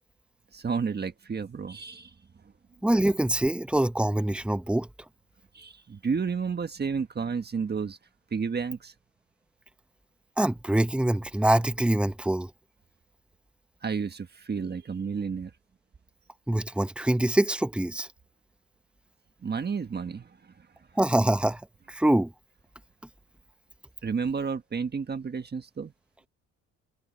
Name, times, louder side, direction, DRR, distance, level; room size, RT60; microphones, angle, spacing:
voice 1, 0.5-2.1 5.5-8.0 8.3-8.9 13.8-15.5 19.4-20.5 24.0-25.9, right 5 dB, 35° right, 1.5 m, -31 dB
voice 2, 2.8-4.9 10.4-12.5 16.5-18.1 21.0-21.6 21.9-22.3, right 1 dB, 5° right, 1.1 m, -24 dB
cardioid pair, 90°, 30 cm